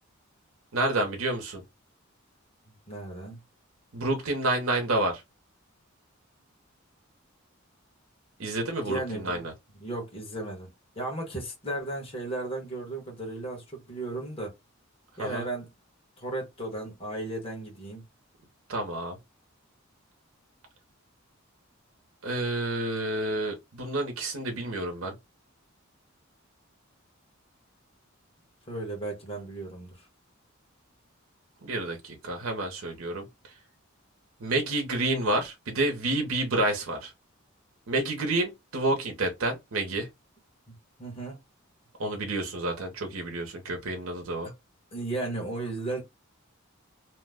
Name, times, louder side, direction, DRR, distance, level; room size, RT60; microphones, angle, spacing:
voice 1, 0.7-1.6 3.9-5.2 8.4-9.5 15.2-15.4 18.7-19.2 22.2-25.1 31.6-33.3 34.4-37.1 37.9-40.1 42.0-44.5, right 2 dB, 85° right, 0.8 m, -29 dB
voice 2, 2.7-3.4 8.9-9.4 9.8-14.5 15.2-15.7 16.2-18.0 28.7-30.1 40.7-40.8 41.0-41.4 44.9-46.0, right 2 dB, 30° left, 1.2 m, -35 dB
2.8 x 2.1 x 3.5 m
head